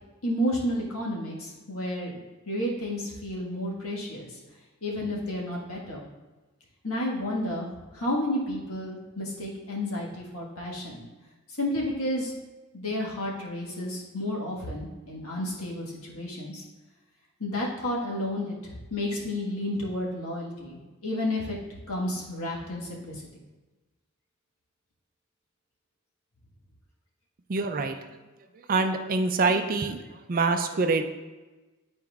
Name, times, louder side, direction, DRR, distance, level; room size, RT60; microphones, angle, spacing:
voice 1, 0.2-4.4 4.8-6.0 6.8-11.1 11.6-12.3 12.7-16.6 17.4-21.6 21.9-23.2, left 1 dB, 80° left, -3 dB, 1.5 m, -31 dB
voice 2, 27.5-28.1 28.7-30.0 30.3-31.0, right 3 dB, 40° right, 6 dB, 0.4 m, -25 dB
9.4 x 4.3 x 2.4 m, 1.2 s
head